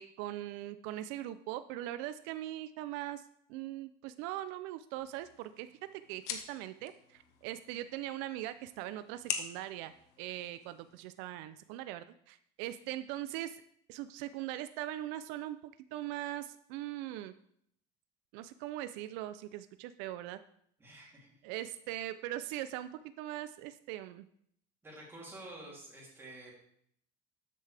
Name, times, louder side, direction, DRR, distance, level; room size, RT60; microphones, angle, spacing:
voice 1, 0.0-3.2 3.5-5.7 5.9-9.9 10.2-13.6 13.9-15.6 15.9-17.3 18.3-20.4 21.4-22.9 23.2-24.3, right 14 dB, 80° right, 12 dB, 0.5 m, -40 dB
sound 1, 5.0-11.0, left 8 dB, 65° left, 1.3 m, -45 dB
voice 2, 20.8-21.4 24.8-26.5, right 2 dB, 15° right, -4 dB, 3.1 m, -49 dB
12.0 x 8.4 x 3.4 m, 0.68 s
cardioid pair, 160°, 18 cm